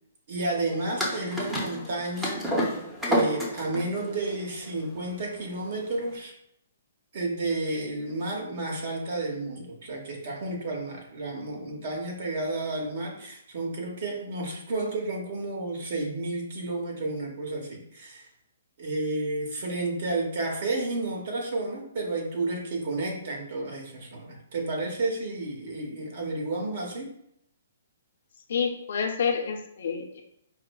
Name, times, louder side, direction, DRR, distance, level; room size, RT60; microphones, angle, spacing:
voice 1, 0.3-2.5 3.0-6.3 7.1-18.3 18.8-27.1, right 2 dB, 55° right, 0 dB, 1.0 m, -31 dB
sound 1, 1.0-6.1, equal, 5° right, 0.6 m, -30 dB
voice 2, 28.5-30.2, left 6 dB, 65° left, 2 dB, 0.6 m, -29 dB
4.8 x 2.0 x 2.2 m, 0.72 s
hypercardioid pair, 150°, 0 cm